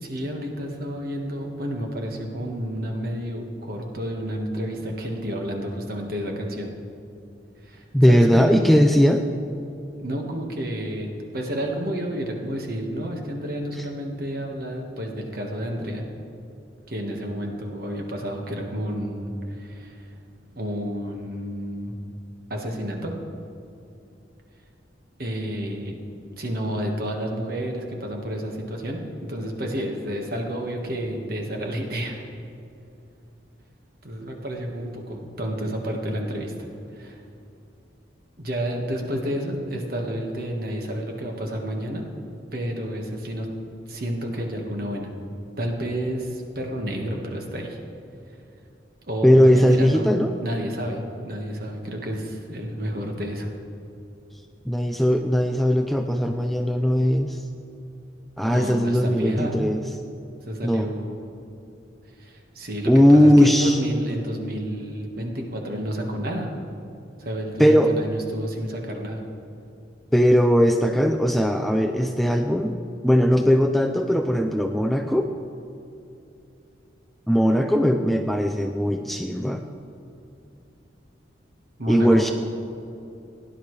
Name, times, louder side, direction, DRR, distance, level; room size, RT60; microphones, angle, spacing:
voice 1, 0.0-6.7 7.6-8.5 10.0-16.0 16.9-20.1 20.5-21.9 22.5-23.1 25.2-25.9 26.4-29.0 29.3-32.2 34.0-36.5 36.9-37.2 38.4-42.1 42.5-43.5 43.9-45.1 45.6-47.8 49.1-50.0 50.4-53.5 58.5-59.6 60.4-61.2 62.2-66.5 67.2-69.2 81.8-82.3, equal, 50° right, 1 dB, 1.5 m, -30 dB
voice 2, 7.9-9.2 13.8-13.9 49.2-50.3 54.7-57.4 58.4-59.8 60.6-60.9 62.9-63.8 67.6-67.9 70.1-75.3 77.3-79.6 81.9-82.3, equal, ahead, 5 dB, 0.3 m, -19 dB
17.0 x 10.5 x 3.2 m, 2.7 s
head